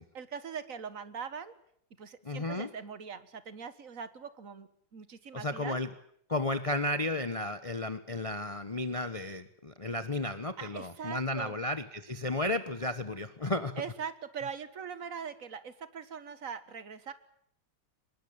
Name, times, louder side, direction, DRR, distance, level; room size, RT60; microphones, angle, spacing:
voice 1, 0.1-1.5 2.0-5.8 10.6-11.5 13.8-17.1, right 6 dB, 50° right, 13 dB, 1.8 m, -41 dB
voice 2, 2.2-2.7 5.3-5.9 6.3-13.8, left 2 dB, 25° left, 11 dB, 0.9 m, -33 dB
24.0 x 21.0 x 8.7 m, 0.67 s
omnidirectional pair, 1.9 m